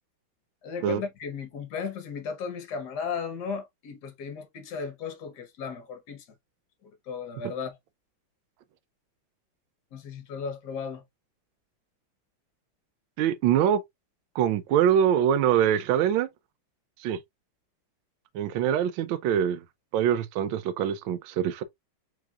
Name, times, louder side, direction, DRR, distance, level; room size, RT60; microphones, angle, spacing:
voice 1, 0.6-6.2 6.8-7.8 9.9-11.0, left 5 dB, 60° left, 1.6 m, -35 dB
voice 2, 13.2-13.8 14.4-16.3 17.0-17.2 18.3-19.6 19.9-21.6, right 9 dB, 80° right, 1.3 m, -24 dB
4.7 x 3.8 x 2.4 m
omnidirectional pair, 2.2 m